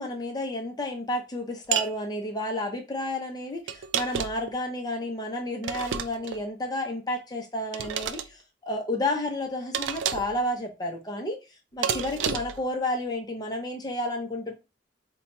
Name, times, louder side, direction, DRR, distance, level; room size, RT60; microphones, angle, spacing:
voice 1, 0.0-11.4 11.7-14.5, left 1 dB, 20° left, 2 dB, 0.6 m, -31 dB
sound 1, 1.7-1.9 3.7-4.5 5.6-6.4 7.7-8.3 9.7-10.4 11.8-12.6, right 8 dB, 85° right, 0.3 m, -30 dB
2.6 x 2.2 x 4.1 m, 0.27 s
head